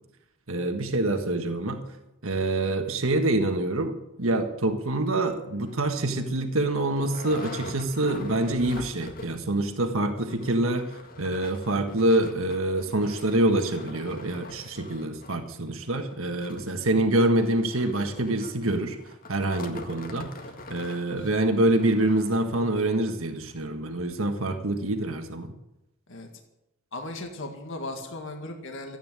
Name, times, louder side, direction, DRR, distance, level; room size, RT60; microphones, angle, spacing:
voice 1, 0.5-1.8 2.2-3.9 4.2-19.0 19.3-20.3 20.7-25.5, right 1 dB, 75° right, 6 dB, 1.6 m, -26 dB
sound 1, 5.6-5.8 6.3-6.4 6.6-9.5 9.8-9.9 10.2-23.0 23.6-23.7 24.0-24.1, left 2 dB, 45° left, 1.8 m, -44 dB
voice 2, 26.9-29.0, left 2 dB, 65° left, 3 dB, 1.9 m, -37 dB
14.5 x 9.4 x 9.0 m, 0.93 s
head